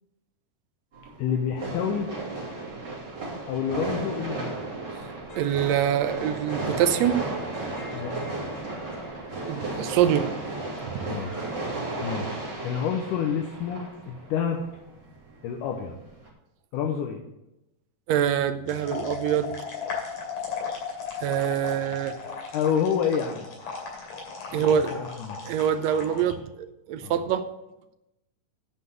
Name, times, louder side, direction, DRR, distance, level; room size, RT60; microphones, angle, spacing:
sound 1, 0.9-16.3, right 2 dB, 35° right, 3.4 m, -34 dB
voice 1, 1.2-2.1 3.5-4.6 7.9-8.1 11.1-11.4 12.0-14.6 15.4-16.0 16.7-17.2 22.5-23.5 24.5-25.4 27.0-27.2, left 7 dB, 80° left, 3 dB, 2.3 m, -28 dB
sound 2, 5.3-11.7, left 3 dB, 40° left, 3.7 m, -45 dB
voice 2, 5.4-7.2 9.5-10.3 10.8-10.9 18.1-19.5 21.2-22.2 24.5-24.9 25.4-26.4 26.9-27.5, right 9 dB, 85° right, 9 dB, 1.5 m, -24 dB
sound 3, 18.7-26.3, left 6 dB, 60° left, 3.8 m, -36 dB
9.8 x 5.7 x 7.8 m, 0.91 s
omnidirectional pair, 3.8 m